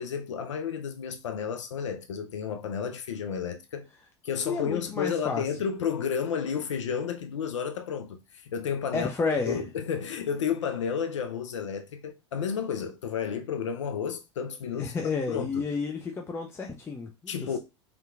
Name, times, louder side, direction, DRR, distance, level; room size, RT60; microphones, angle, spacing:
voice 1, 0.0-3.9 4.2-14.9 15.3-15.6 17.3-17.6, left 7 dB, 85° left, 0.4 m, -32 dB
voice 2, 4.5-5.4 8.9-9.6 14.7-17.6, left 4 dB, 15° left, 0.4 m, -31 dB
3.5 x 2.8 x 2.3 m
hypercardioid pair, 90°, 15 cm